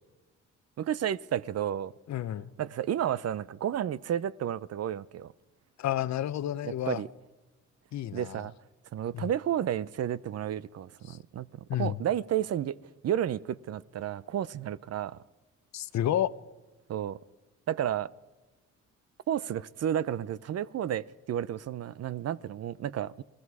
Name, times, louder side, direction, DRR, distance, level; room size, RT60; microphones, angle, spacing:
voice 1, 0.8-1.9 2.6-5.3 6.6-7.1 8.1-8.5 8.9-11.5 11.8-12.8 13.0-15.2 16.9-17.2 17.7-18.1 19.3-23.2, right 10 dB, 55° right, 0.7 m, -31 dB
voice 2, 2.1-2.5 5.8-7.0 7.9-8.5 9.1-9.3 11.1-11.2 11.7-12.0 15.7-16.3, left 11 dB, 65° left, 0.8 m, -30 dB
28.0 x 19.0 x 4.8 m
cardioid pair, 90°, 30 cm